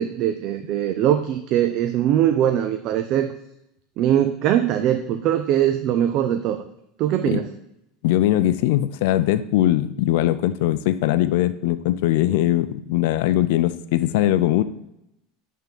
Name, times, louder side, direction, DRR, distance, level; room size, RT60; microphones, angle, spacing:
voice 1, 0.0-3.3 4.0-6.6 7.0-7.5, right 11 dB, 50° right, 8 dB, 0.4 m, -21 dB
voice 2, 8.0-14.6, left 14 dB, 70° left, 13 dB, 0.3 m, -20 dB
8.1 x 3.6 x 3.5 m, 0.83 s
supercardioid pair, 140°, 0 cm